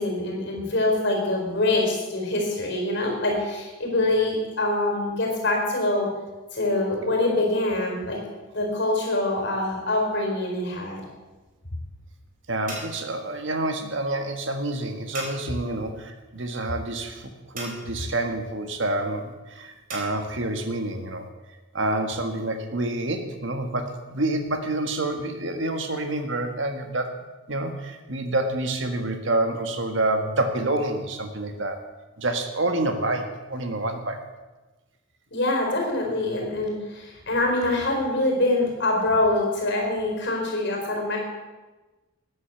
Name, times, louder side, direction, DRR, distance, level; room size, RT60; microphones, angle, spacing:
voice 1, 0.0-6.1 6.5-8.2 8.5-11.0 35.3-41.2, left 2 dB, 55° left, 1 dB, 4.3 m, -24 dB
sound 1, 10.4-20.1, right 2 dB, 40° right, 3.8 m, -43 dB
voice 2, 12.5-21.3 21.7-27.2 27.5-31.8 32.2-34.2, right 2 dB, 60° right, 6 dB, 1.6 m, -28 dB
14.0 x 9.7 x 6.8 m, 1.2 s
head